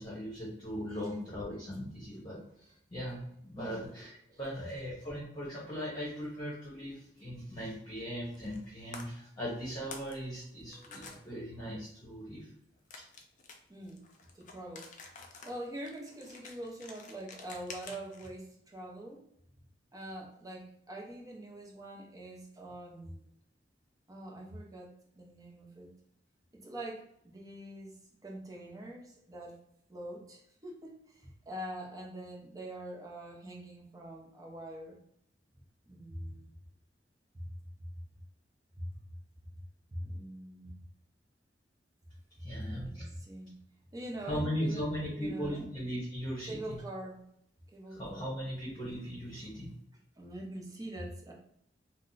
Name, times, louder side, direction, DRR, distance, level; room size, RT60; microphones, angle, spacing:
voice 1, 0.0-12.5 13.0-13.1 42.4-43.1 44.2-46.8 47.9-49.7, equal, 25° left, -7 dB, 0.9 m, -38 dB
sound 1, 8.3-8.7 8.9-9.0 9.6-10.2 10.4-11.2 12.9-18.3, left 4 dB, 45° left, 0.5 m, -49 dB
voice 2, 13.7-14.0 14.3-14.9 15.4-19.2 19.9-23.2 24.1-25.9 26.5-29.6 29.9-35.0 35.9-36.5 38.9-39.0 39.9-40.8 42.5-43.6 43.9-45.7 46.4-47.2 47.7-48.3 50.2-51.3, right 1 dB, 20° right, -1 dB, 0.6 m, -44 dB
2.7 x 2.0 x 3.8 m, 0.72 s
head